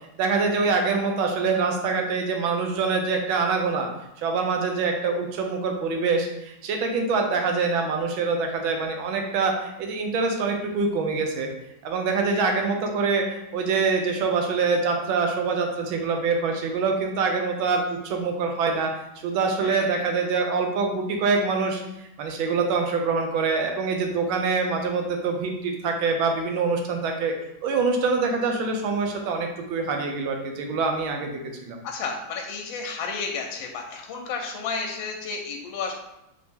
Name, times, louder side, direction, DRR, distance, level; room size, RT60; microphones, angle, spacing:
voice 1, 0.2-3.9 4.2-11.5 11.8-18.9 19.2-27.3 27.6-31.8, right 4 dB, 85° right, 3 dB, 1.5 m, -25 dB
voice 2, 12.1-12.4 19.6-20.1 31.8-35.9, left 5 dB, 80° left, 1 dB, 1.3 m, -32 dB
4.4 x 2.7 x 3.5 m, 0.86 s
omnidirectional pair, 2.1 m